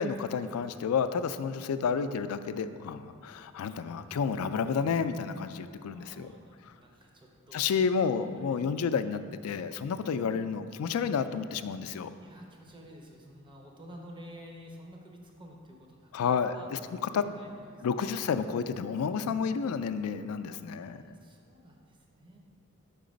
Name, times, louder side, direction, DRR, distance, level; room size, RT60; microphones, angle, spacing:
voice 1, 0.0-6.3 6.7-6.8 7.5-12.1 16.1-16.8 17.1-17.2 17.8-21.2, left 6 dB, 85° left, 11 dB, 0.3 m, -30 dB
voice 2, 5.8-7.7 8.4-8.6 12.1-16.7 17.1-17.9 18.3-18.4 20.6-22.4, equal, 20° right, 0 dB, 0.7 m, -51 dB
5.8 x 4.6 x 5.1 m, 2.3 s
head